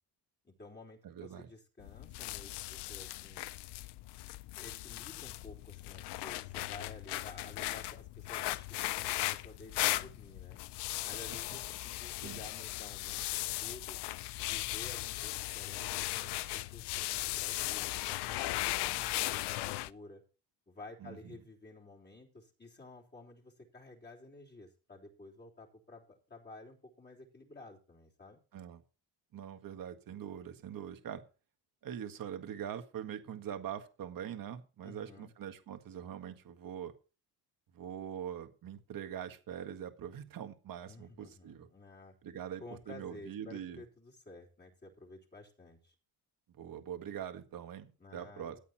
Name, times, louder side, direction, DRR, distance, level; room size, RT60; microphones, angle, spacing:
voice 1, 0.4-3.5 4.6-8.7 8.9-10.6 11.0-14.0 14.4-20.2 20.7-28.4 34.8-35.3 40.9-42.2 42.6-45.9 48.0-48.6, left 2 dB, 25° left, -3 dB, 3.4 m, -52 dB
voice 2, 1.0-1.5 12.2-12.4 21.0-21.3 28.5-28.8 29.3-31.2 31.8-36.9 37.7-41.7 42.2-43.8 46.6-48.6, right 9 dB, 55° right, 7 dB, 1.8 m, -43 dB
sound 1, 1.8-19.9, left 17 dB, 90° left, 0.6 m, -37 dB
13.5 x 8.6 x 4.3 m, 0.35 s
cardioid pair, 110°, 40 cm